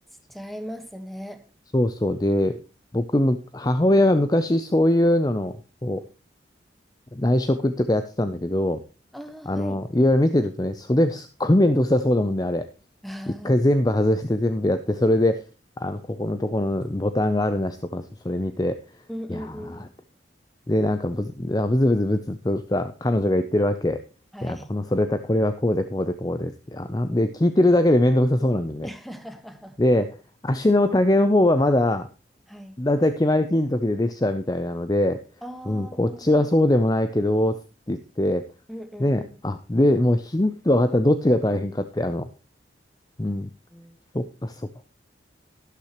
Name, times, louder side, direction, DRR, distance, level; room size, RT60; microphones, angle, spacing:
voice 1, 0.3-1.4 9.1-9.8 13.0-13.6 19.1-19.9 24.3-24.7 28.8-29.8 32.5-32.8 35.4-36.5 38.7-39.3 43.7-44.0, equal, ahead, 7 dB, 1.4 m, -38 dB
voice 2, 1.7-2.6 2.9-5.6 5.8-6.0 7.1-8.8 9.5-12.7 13.4-15.4 15.8-18.8 19.3-19.4 19.7-19.8 20.7-24.0 24.4-28.9 29.8-30.2 30.4-32.1 32.8-35.2 35.7-37.6 37.9-38.4 39.0-42.3 43.2-43.5 44.1-44.7, left 1 dB, 20° left, 10 dB, 0.5 m, -22 dB
12.5 x 11.5 x 3.0 m, 0.31 s
head